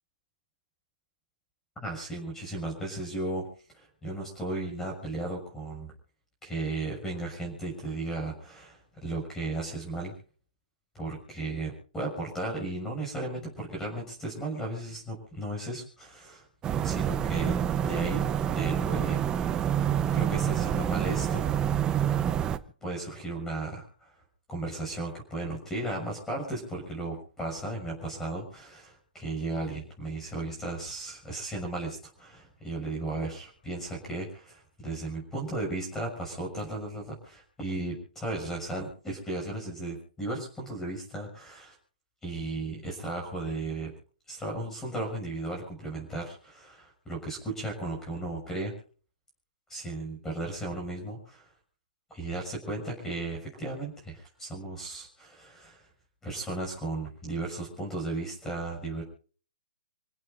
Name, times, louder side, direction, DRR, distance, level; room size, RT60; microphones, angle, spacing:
voice 1, 1.8-3.5 3.7-5.9 6.4-10.1 10.9-16.4 16.8-17.5 17.8-21.5 22.8-24.1 24.5-41.7 42.2-43.9 44.3-48.7 49.7-51.5 52.1-55.9 56.2-59.0, right 2 dB, 10° left, 1 dB, 6.6 m, -35 dB
sound 1, 16.6-22.6, right 9 dB, 15° right, 0.8 m, -27 dB
28.5 x 17.0 x 2.6 m, 0.42 s
hypercardioid pair, 135°, 5 cm